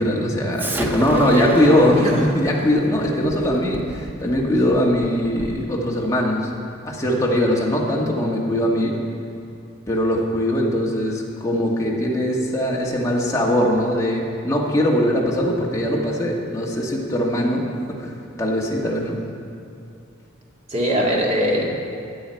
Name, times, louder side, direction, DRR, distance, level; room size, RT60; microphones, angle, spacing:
voice 1, 0.0-6.5 6.8-8.9 9.9-17.7 18.0-18.1 18.4-19.2, equal, 15° left, -3 dB, 1.5 m, -21 dB
Explosion, 0.6-5.7, right 1 dB, 10° right, 0.5 m, -34 dB
voice 2, 0.8-2.2 20.7-21.8, equal, 35° right, -3 dB, 2.0 m, -22 dB
14.5 x 9.1 x 4.5 m, 2.6 s
head